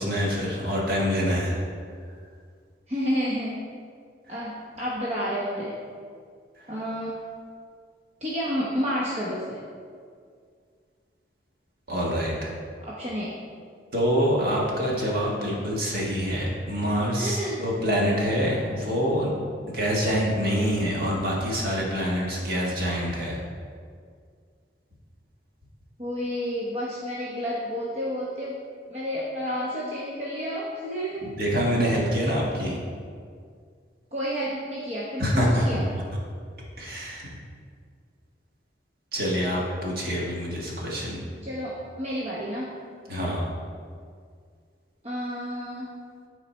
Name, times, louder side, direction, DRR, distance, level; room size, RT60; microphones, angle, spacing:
voice 1, 0.0-1.6 4.3-4.4 11.9-12.5 13.9-19.3 19.7-23.4 31.2-32.8 35.2-36.0 36.8-37.3 39.1-41.2 43.1-43.5, equal, 55° right, -3 dB, 1.5 m, -26 dB
voice 2, 2.9-3.7 4.3-5.8 6.7-7.3 8.2-9.6 12.8-13.4 17.2-17.6 26.0-28.6 28.9-31.3 34.1-35.9 41.4-42.7 45.0-45.9, equal, 35° right, -6 dB, 0.9 m, -30 dB
9.9 x 4.1 x 4.3 m, 2.1 s
head